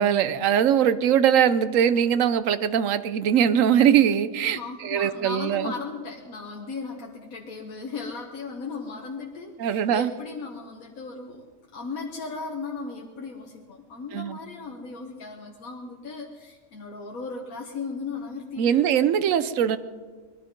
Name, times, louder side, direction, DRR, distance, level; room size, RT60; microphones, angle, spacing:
voice 1, 0.0-4.6 4.8-5.7 9.6-10.1 14.1-14.4 18.6-19.8, right 9 dB, 70° right, 13 dB, 1.1 m, -21 dB
voice 2, 4.5-11.5 11.7-18.8, left 4 dB, 85° left, 0 dB, 1.7 m, -36 dB
20.5 x 12.0 x 5.2 m, 1.5 s
omnidirectional pair, 1.4 m